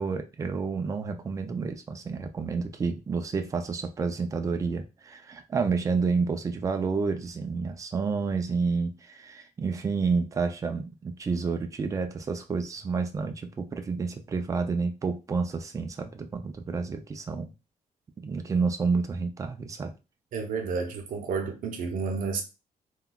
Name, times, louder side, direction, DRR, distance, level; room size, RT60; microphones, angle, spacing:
voice 1, 0.0-17.5 18.2-19.9, right 4 dB, 20° right, 0.3 m, -29 dB
voice 2, 20.3-22.4, right 5 dB, 70° right, 0.7 m, -31 dB
3.7 x 2.2 x 2.2 m
cardioid pair, 160°, 14 cm